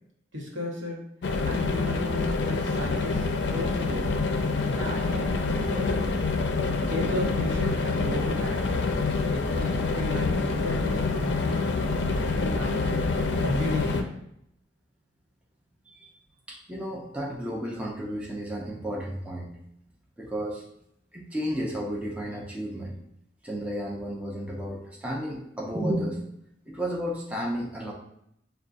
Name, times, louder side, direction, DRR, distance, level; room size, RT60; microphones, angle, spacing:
voice 1, 0.3-1.0 1.4-4.1 4.6-6.0 6.7-8.8 9.2-13.0 13.4-14.1, left 1 dB, 85° right, -2 dB, 1.0 m, -34 dB
sound 1, 1.2-14.0, left 3 dB, 70° left, 0.4 m, -26 dB
voice 2, 16.5-19.5 20.2-20.6 21.1-22.9 23.4-26.2 26.7-27.9, equal, 5° right, -2 dB, 0.4 m, -32 dB
6.6 x 2.3 x 2.5 m, 0.76 s
head